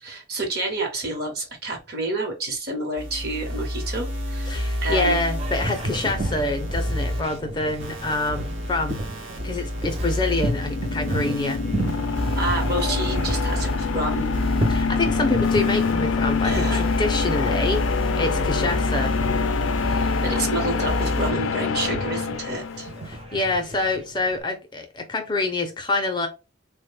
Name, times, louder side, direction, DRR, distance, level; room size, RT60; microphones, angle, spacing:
voice 1, 0.0-5.2 12.3-14.4 16.4-16.8 19.9-22.9, right 2 dB, 50° right, 0.9 m, -29 dB
sound 1, 3.0-7.2 7.8-21.3, equal, 75° right, 1.0 m, -29 dB
voice 2, 4.5-9.0 9.4-12.1 14.7-17.9 18.2-19.1 23.1-26.3, left 2 dB, 25° left, 0.5 m, -26 dB
Boat Water vehicle, 5.4-24.4, right 1 dB, 30° right, 0.5 m, -34 dB
sound 2, 10.1-23.1, left 5 dB, 80° left, 0.4 m, -26 dB
3.7 x 2.1 x 3.2 m
head